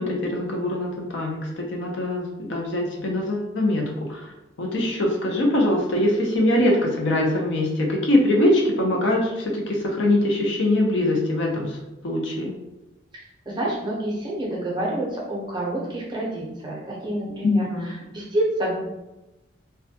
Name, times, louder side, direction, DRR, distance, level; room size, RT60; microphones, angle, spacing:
voice 1, 0.0-4.3 4.6-11.8 12.0-12.5 17.4-17.9, left 1 dB, 65° left, 0 dB, 0.5 m, -23 dB
voice 2, 13.1-18.8, right 1 dB, 20° right, -4 dB, 0.5 m, -28 dB
2.2 x 2.1 x 2.7 m, 0.98 s
head